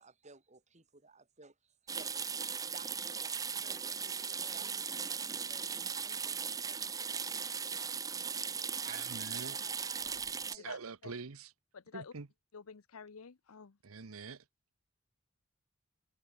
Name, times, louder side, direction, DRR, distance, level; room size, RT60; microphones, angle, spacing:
voice 1, 0.0-4.7 8.8-9.3 9.6-10.2 10.6-10.7, right 4 dB, 35° right, 2.7 m, -57 dB
sound 1, 1.9-10.6, right 6 dB, 15° right, 0.5 m, -38 dB
voice 2, 3.6-8.7 9.6-9.7 10.4-10.7, left 1 dB, 15° left, 2.6 m, -62 dB
voice 3, 8.8-9.6 10.5-11.5 11.9-12.3 13.8-14.4, right 5 dB, 80° right, 1.0 m, -45 dB
voice 4, 11.7-12.1 12.5-13.8, left 5 dB, 85° left, 0.8 m, -49 dB
head